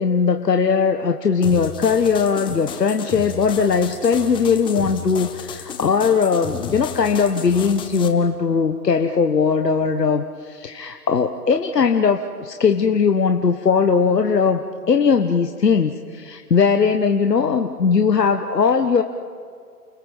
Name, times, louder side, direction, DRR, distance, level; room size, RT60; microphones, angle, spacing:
voice 1, 0.0-14.6 14.9-19.0, left 5 dB, 85° left, 6 dB, 1.5 m, -19 dB
sound 1, 1.4-8.1, left 8 dB, 10° left, 1.1 m, -34 dB
29.5 x 20.5 x 7.3 m, 2.2 s
hypercardioid pair, 135°, 48 cm